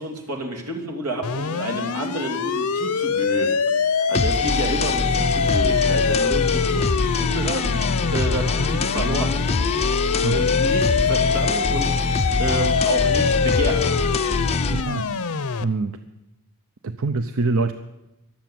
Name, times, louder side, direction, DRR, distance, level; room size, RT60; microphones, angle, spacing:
voice 1, 0.0-6.9 7.2-9.3 10.3-13.8, right 1 dB, 90° right, 3 dB, 3.1 m, -30 dB
sound 1, 1.2-15.6, left 5 dB, 70° left, 0.7 m, -24 dB
sound 2, 4.1-14.8, left 4 dB, 30° left, 0.5 m, -24 dB
voice 2, 14.7-15.3 15.6-16.0 16.8-17.7, right 3 dB, 65° right, 10 dB, 0.7 m, -25 dB
22.5 x 7.6 x 7.8 m, 0.97 s
head